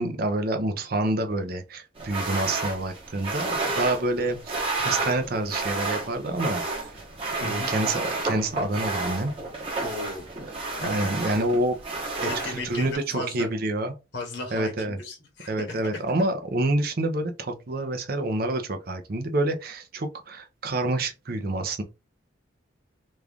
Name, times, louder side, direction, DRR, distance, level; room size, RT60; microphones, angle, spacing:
voice 1, 0.0-6.9 7.4-9.3 10.9-11.7 12.2-12.3 12.6-13.9 14.5-15.0 15.5-21.8, right 2 dB, 50° right, 0.6 m, -27 dB
sound 1, 2.0-12.9, right 3 dB, 30° right, 1.1 m, -31 dB
voice 2, 7.4-7.7 9.8-10.3 10.8-11.4 12.2-13.5 14.1-16.0, left 2 dB, 70° left, 1.2 m, -35 dB
3.1 x 2.4 x 3.4 m
head